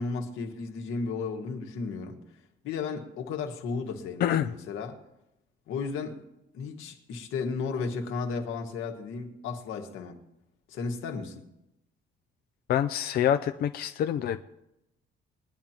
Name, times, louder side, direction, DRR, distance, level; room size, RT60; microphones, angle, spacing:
voice 1, 0.0-2.2 2.6-5.0 5.7-6.2 6.5-10.2 10.7-11.4, left 4 dB, 85° left, 1.7 m, -34 dB
voice 2, 4.2-4.5 12.7-14.4, left 10 dB, 50° left, 0.4 m, -26 dB
21.0 x 10.5 x 2.9 m
cardioid pair, 170°, 20 cm